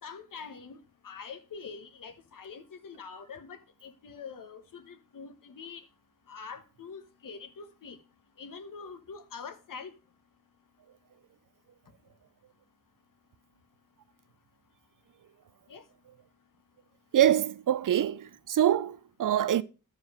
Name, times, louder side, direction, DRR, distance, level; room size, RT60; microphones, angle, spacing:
voice 1, 0.0-0.8 1.0-5.9 6.3-8.0 8.4-9.9 15.7-15.8, left 5 dB, 65° left, 1.1 m, -44 dB
voice 2, 17.1-19.6, right 11 dB, 60° right, 0.5 m, -25 dB
12.0 x 4.6 x 4.8 m
wide cardioid pair, 145°, 35 cm